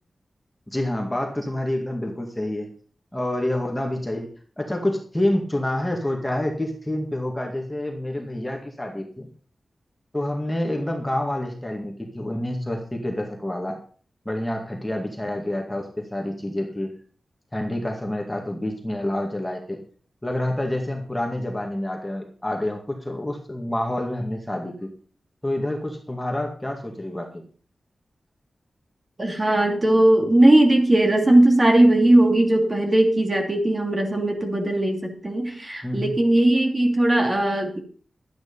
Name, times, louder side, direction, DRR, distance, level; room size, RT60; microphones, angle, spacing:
voice 1, 0.7-2.7 3.1-4.3 4.6-9.3 10.1-13.8 14.3-16.9 17.5-19.8 20.2-24.9 25.4-27.4 35.8-36.1, left 1 dB, 10° left, 1 dB, 2.1 m, -28 dB
voice 2, 29.2-37.8, right 1 dB, 25° right, 2 dB, 2.8 m, -18 dB
12.0 x 9.6 x 5.5 m, 0.43 s
wide cardioid pair, 145°, 0 cm